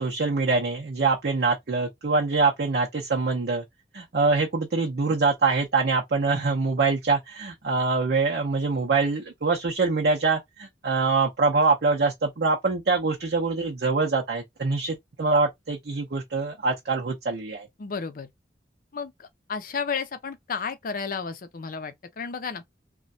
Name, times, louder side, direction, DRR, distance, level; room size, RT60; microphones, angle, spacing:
voice 1, 0.0-3.6 3.9-17.7, right 4 dB, 60° right, 0.6 m, -24 dB
voice 2, 17.8-18.3 18.9-22.6, left 5 dB, 50° left, 0.5 m, -32 dB
3.0 x 2.2 x 2.6 m
head